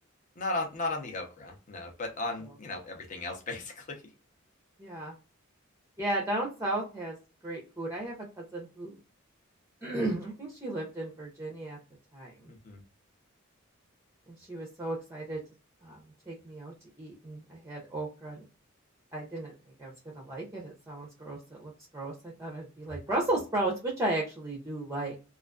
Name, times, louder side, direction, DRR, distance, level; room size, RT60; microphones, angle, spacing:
voice 1, 0.4-4.0 12.5-12.8, left 2 dB, 35° left, 2 dB, 0.6 m, -36 dB
voice 2, 4.8-5.1 6.0-7.1 7.4-9.0 9.8-11.8 12.1-12.3 14.4-15.4 15.8-16.0 16.3-16.7 17.0-18.4 19.1-19.5 19.8-22.1 22.4-25.1, right 2 dB, 15° right, -2 dB, 0.5 m, -34 dB
2.4 x 2.3 x 2.3 m, 0.32 s
head